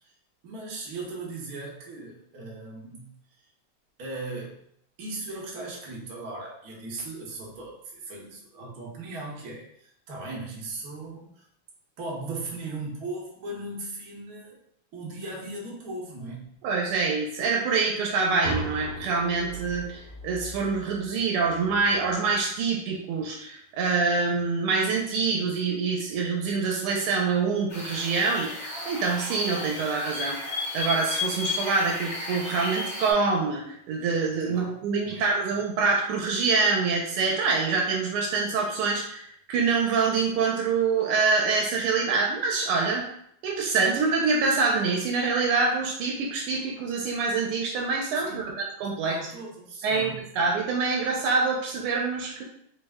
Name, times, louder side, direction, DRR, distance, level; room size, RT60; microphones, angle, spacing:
voice 1, 0.4-3.1 4.0-4.5 5.0-11.5 12.0-14.6 14.9-16.4 25.3-25.5 34.4-34.7 35.0-35.4 48.2-48.6 49.1-50.2, right 2 dB, 55° right, -4 dB, 1.2 m, -38 dB
voice 2, 16.6-30.4 30.7-33.6 33.9-43.1 43.4-49.2 49.8-52.4, right 4 dB, 90° right, -1 dB, 1.5 m, -25 dB
sound 1, 18.4-22.4, right 2 dB, 85° left, 1.9 m, -38 dB
sound 2, 27.7-33.1, left 3 dB, 60° left, 1.8 m, -33 dB
4.2 x 2.1 x 3.4 m, 0.69 s
omnidirectional pair, 2.4 m